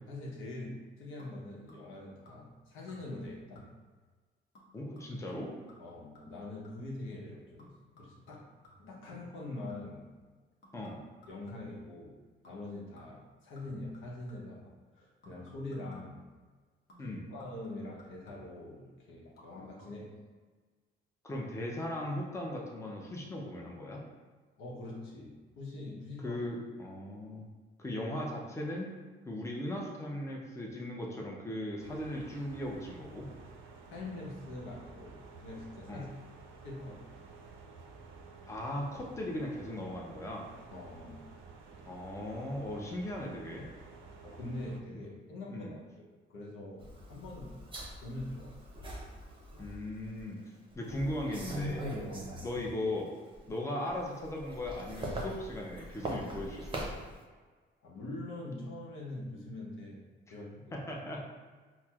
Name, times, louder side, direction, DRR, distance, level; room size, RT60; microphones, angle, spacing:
voice 1, 0.1-3.6 5.8-7.7 8.0-8.5 8.8-10.1 11.3-12.2 12.4-16.3 17.0-20.1 24.6-26.5 33.9-36.1 36.6-37.0 40.7-41.2 44.2-45.8 46.3-47.6 48.0-48.6 52.1-52.3 57.8-60.8, left 2 dB, 85° left, -3 dB, 0.8 m, -44 dB
sound 1, 1.2-2.0 2.3-2.6 2.9-3.3 3.6-4.0 4.5-7.0 7.6-10.1 10.6-11.9 12.4-12.7 13.0-14.6 15.2-16.3 16.9-18.7 19.2-19.5 19.8-19.9, left 1 dB, 55° left, 0.9 m, -60 dB
voice 2, 4.7-5.5 10.7-11.0 17.0-17.3 21.2-24.0 26.2-27.5 27.8-28.9 29.3-33.3 35.9-36.1 38.5-40.4 41.9-43.7 45.5-45.7 49.6-50.4 50.7-51.8 52.4-53.1 53.5-56.8 60.7-61.3, left 1 dB, 15° left, -2 dB, 0.5 m, -38 dB
sound 2, 31.8-44.8, right 4 dB, 85° right, 0.4 m, -52 dB
sound 3, 46.8-50.2 50.7-53.0 53.3-57.2, equal, 25° right, 0.7 m, -41 dB
4.2 x 2.0 x 2.3 m, 1.4 s
cardioid pair, 90°, 20 cm